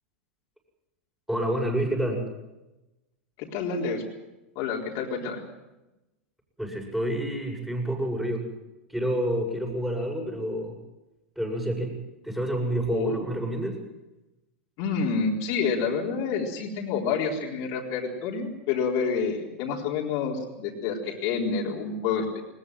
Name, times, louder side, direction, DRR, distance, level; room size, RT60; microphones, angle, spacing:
voice 1, 1.3-2.2 6.6-8.4 8.9-10.7 11.4-12.0 12.2-13.8, right 1 dB, 5° right, 1 dB, 7.9 m, -28 dB
voice 2, 3.4-4.0 4.6-5.4 12.9-13.2 14.8-22.4, left 5 dB, 50° left, -2 dB, 4.2 m, -28 dB
20.5 x 20.5 x 7.7 m, 1.0 s
hypercardioid pair, 105°, 7 cm